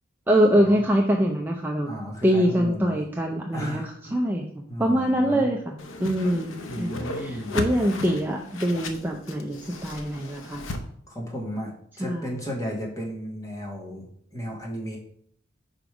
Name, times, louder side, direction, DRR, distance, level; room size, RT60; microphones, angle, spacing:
voice 1, 0.3-1.9 2.2-3.8 4.1-4.5 4.8-10.7 12.0-12.3, equal, 10° right, 0 dB, 0.5 m, -24 dB
voice 2, 1.8-3.0 3.5-4.2 4.7-5.5 6.7-7.6 11.1-15.0, equal, 15° left, -2 dB, 1.6 m, -34 dB
Whoosh swoosh swish, 5.8-10.8, left 2 dB, 75° left, 0.8 m, -35 dB
5.1 x 5.1 x 4.8 m, 0.64 s
head